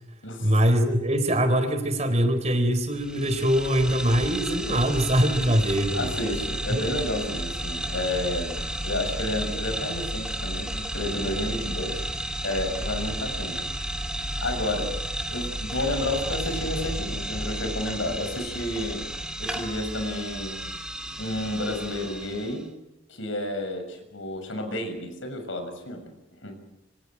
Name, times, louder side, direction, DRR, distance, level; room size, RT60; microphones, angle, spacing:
voice 1, 0.4-6.2 6.7-6.8, equal, 35° right, 8 dB, 4.2 m, -23 dB
sound 1, 2.9-22.6, right 1 dB, 5° right, 2.8 m, -32 dB
voice 2, 5.9-8.5 8.8-13.7 14.4-15.0 15.3-19.0 19.4-20.6 21.2-22.7 23.1-26.1 26.4-26.5, left 1 dB, 90° left, 6 dB, 6.8 m, -31 dB
27.0 x 25.0 x 6.3 m, 0.91 s
head